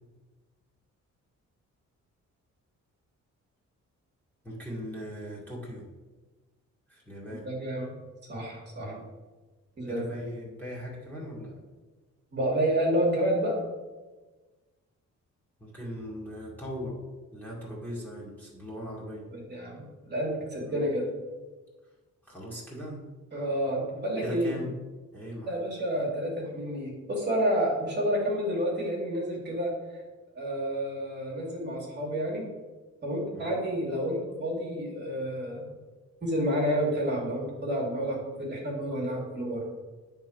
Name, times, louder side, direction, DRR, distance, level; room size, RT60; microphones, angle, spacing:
voice 1, 4.4-5.9 6.9-7.5 8.8-9.1 9.9-11.6 15.6-17.0 17.3-19.3 20.6-20.8 22.2-23.0 24.2-24.7 25.1-25.6 33.3-33.6, equal, 5° left, -6 dB, 2.2 m, -39 dB
voice 2, 7.3-8.0 8.3-8.9 9.8-10.0 12.3-13.6 19.3-21.1 23.3-24.5 25.5-29.7 30.4-32.5 33.0-35.7 36.2-39.6, equal, 35° right, -3 dB, 2.0 m, -29 dB
9.5 x 3.7 x 6.2 m, 1.3 s
wide cardioid pair, 155°, 30 cm